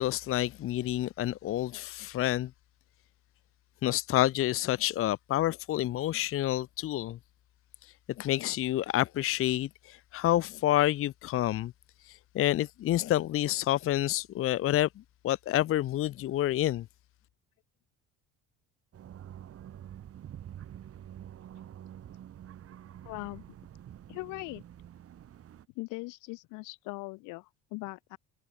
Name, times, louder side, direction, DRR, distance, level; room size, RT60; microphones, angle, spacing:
voice 1, 0.0-2.5 3.8-7.2 8.2-11.7 12.1-14.9 15.2-16.8, left 14 dB, 45° left, 0.7 m, -28 dB
sound 1, 18.9-25.7, right 10 dB, 50° right, 5.4 m, -47 dB
voice 2, 23.1-23.4 24.1-24.6 25.8-28.2, left 26 dB, 85° left, 2.0 m, -40 dB
cardioid pair, 115°, 30 cm